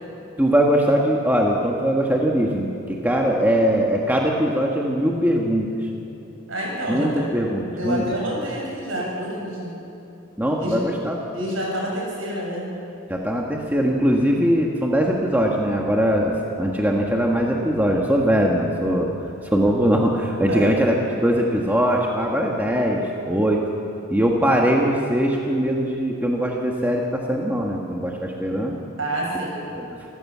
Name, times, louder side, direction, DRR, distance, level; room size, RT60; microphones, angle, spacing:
voice 1, 0.4-5.7 6.9-8.0 10.4-11.2 13.1-19.1 19.5-23.6 24.1-28.8 29.7-29.9, equal, 10° right, -1 dB, 1.5 m, -21 dB
voice 2, 6.5-7.3 7.8-9.7 10.6-10.8 11.3-12.7 20.5-20.7 29.0-29.6, right 1 dB, 65° right, -2 dB, 7.2 m, -28 dB
26.5 x 15.5 x 7.4 m, 2.8 s
head